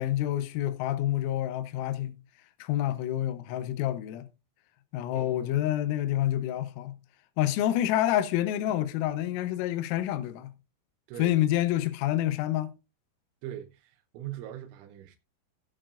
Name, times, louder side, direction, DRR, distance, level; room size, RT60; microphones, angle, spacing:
voice 1, 0.0-2.2 2.6-4.3 4.9-7.0 7.4-10.5 11.2-12.7, left 13 dB, 85° left, 3.5 m, -28 dB
voice 2, 5.1-5.6 11.1-11.3 13.4-15.2, right 12 dB, 75° right, 3.2 m, -41 dB
18.5 x 7.1 x 2.5 m
omnidirectional pair, 5.9 m